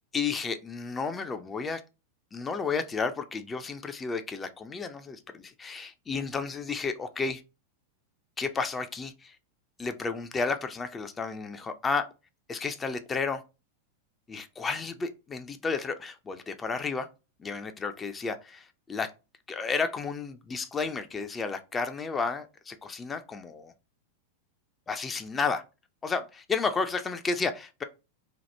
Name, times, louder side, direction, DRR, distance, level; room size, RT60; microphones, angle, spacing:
voice 1, 0.1-1.8 2.3-7.4 8.4-9.4 9.8-12.1 12.5-13.4 14.3-17.1 17.4-19.1 19.5-23.7 24.9-25.6 26.0-27.8, left 4 dB, 20° left, 0.4 m, -32 dB
2.9 x 2.1 x 3.2 m
figure-of-eight pair, 90°, 0 cm